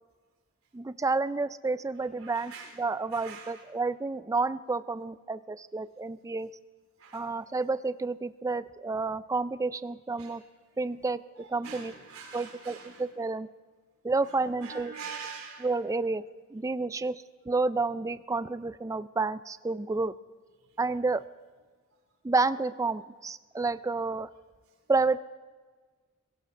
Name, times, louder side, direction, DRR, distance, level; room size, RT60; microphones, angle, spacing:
voice 1, 0.7-6.5 7.1-10.4 10.8-11.9 12.3-13.5 14.0-14.9 15.6-16.2 16.5-20.1 20.8-21.2 22.2-24.3 24.9-25.2, right 3 dB, 15° right, 15 dB, 0.4 m, -30 dB
voice 2, 2.2-2.7 3.1-3.6 7.0-7.2 10.2-10.4 11.6-13.0 14.6-15.7, right 5 dB, 85° right, 1 dB, 3.7 m, -43 dB
22.0 x 17.0 x 3.6 m, 1.5 s
head